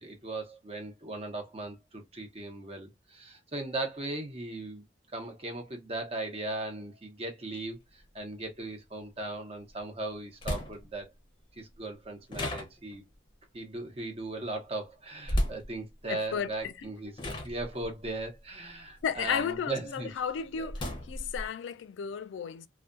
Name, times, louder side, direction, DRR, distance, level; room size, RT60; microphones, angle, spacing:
voice 1, 0.0-4.8 5.1-11.1 11.6-13.0 13.5-20.1 20.5-20.7, right 2 dB, 35° right, 0.8 m, -38 dB
sound 1, 7.6-7.7 9.7-9.8 10.4-11.0 12.3-13.1 15.2-15.7 16.6-16.8 17.2-19.6 20.0-21.5, left 1 dB, 25° left, 0.6 m, -34 dB
voice 2, 16.1-16.9 19.0-22.7, left 7 dB, 85° left, 0.3 m, -34 dB
2.3 x 2.2 x 2.4 m
head